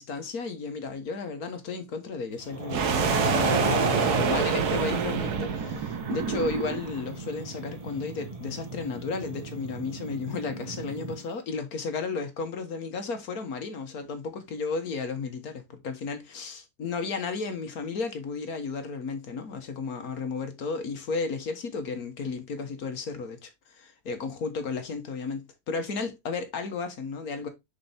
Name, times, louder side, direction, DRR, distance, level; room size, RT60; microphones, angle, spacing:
voice 1, 0.0-27.5, left 4 dB, 70° left, 1.8 m, -34 dB
sound 1, 2.5-11.2, right 3 dB, 25° right, 1.0 m, -32 dB
sound 2, 2.7-7.0, right 7 dB, 80° right, 1.5 m, -28 dB
6.7 x 5.0 x 3.5 m
omnidirectional pair, 1.7 m